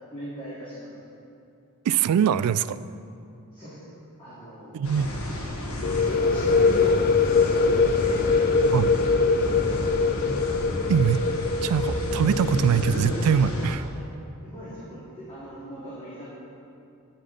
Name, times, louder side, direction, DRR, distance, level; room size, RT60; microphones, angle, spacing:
voice 1, 0.1-0.9 3.5-3.8 4.2-4.9 6.2-9.1 13.9-14.1 14.4-16.3, right 1 dB, 25° left, -11 dB, 2.2 m, -40 dB
voice 2, 1.9-2.8 4.7-5.1 8.7-8.9 10.9-11.2 11.6-13.9, right 8 dB, 90° right, 15 dB, 0.3 m, -22 dB
sound 1, 4.8-13.8, left 1 dB, 70° left, 1.3 m, -31 dB
sound 2, 5.8-13.4, left 4 dB, 45° left, 0.3 m, -23 dB
10.0 x 9.7 x 3.9 m, 2.6 s
head